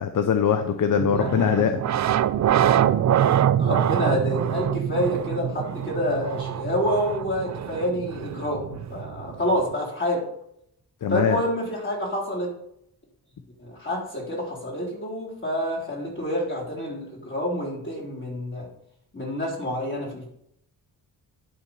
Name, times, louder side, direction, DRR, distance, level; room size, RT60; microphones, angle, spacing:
voice 1, 0.0-1.8 11.0-11.4, left 7 dB, 55° left, 8 dB, 0.7 m, -22 dB
sound 1, 1.0-9.7, right 10 dB, 50° right, 0.4 m, -25 dB
voice 2, 1.1-1.5 3.6-10.3 11.1-12.5 13.6-18.7 19.1-20.3, equal, 30° left, -4 dB, 3.8 m, -28 dB
11.0 x 4.1 x 5.4 m, 0.76 s
cardioid pair, 100°, 38 cm